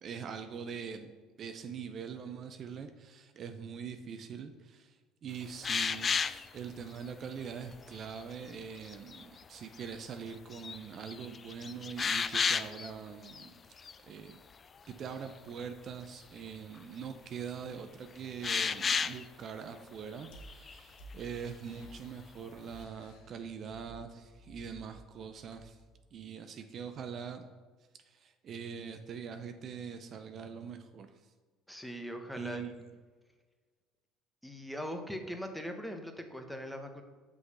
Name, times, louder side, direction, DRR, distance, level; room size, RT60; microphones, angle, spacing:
voice 1, 0.0-1.1 1.4-5.0 5.2-13.6 14.0-14.4 14.9-25.8 26.1-27.5 28.0-31.1 32.4-32.7, right 6 dB, 50° right, 7 dB, 0.6 m, -43 dB
sound 1, 5.6-6.5 7.1-7.2 7.7-8.2 8.8-9.2 9.8-9.9 10.3-10.8 11.1-12.9 13.3-13.5 13.8-14.0 18.4-19.3 20.2-20.8, left 5 dB, 35° left, 0.3 m, -32 dB
sound 2, 20.3-26.0, right 1 dB, 70° left, 1.3 m, -55 dB
voice 2, 31.7-32.6 34.4-37.0, equal, ahead, 5 dB, 1.1 m, -40 dB
6.4 x 4.8 x 5.7 m, 1.4 s
hypercardioid pair, 70°, 0 cm